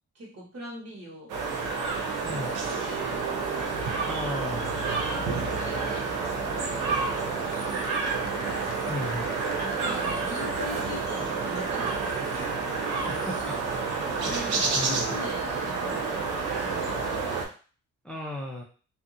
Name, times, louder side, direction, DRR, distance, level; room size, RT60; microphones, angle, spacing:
voice 1, 0.1-1.3 2.2-3.4 4.8-7.9 8.5-8.7 9.2-12.4 14.2-17.2, equal, 55° right, -3 dB, 1.5 m, -41 dB
sound 1, 1.3-17.5, right 4 dB, 90° right, 0.7 m, -29 dB
voice 2, 4.0-4.8 8.9-9.3 12.9-13.6 14.2-15.3 18.0-18.6, left 1 dB, 5° left, -1 dB, 0.5 m, -35 dB
sound 2, 7.2-11.6 11.9-12.0, left 6 dB, 65° left, 0.5 m, -46 dB
2.7 x 2.3 x 2.6 m, 0.38 s
cardioid pair, 90°, 30 cm